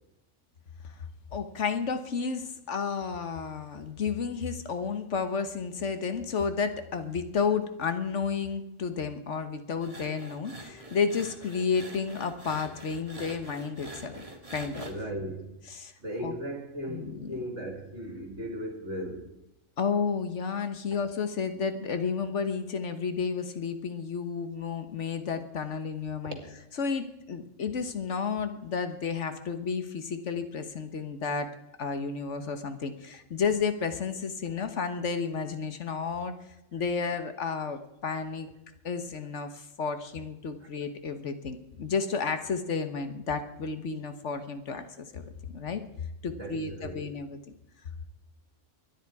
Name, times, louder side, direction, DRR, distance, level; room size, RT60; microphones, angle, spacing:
voice 1, 1.3-14.2 14.5-14.8 15.7-15.9 16.2-16.3 16.9-17.3 19.8-26.4 26.8-31.5 31.8-36.3 36.7-38.5 38.8-45.8 46.2-47.4, left 5 dB, 70° left, 1.5 m, -32 dB
sound 1, 9.8-14.9, right 1 dB, 30° right, 1.9 m, -45 dB
voice 2, 14.8-15.5 16.0-19.3 26.2-26.4 40.6-40.7 46.4-47.1, right 1 dB, 65° right, 3.1 m, -37 dB
23.0 x 10.0 x 4.8 m
omnidirectional pair, 1.3 m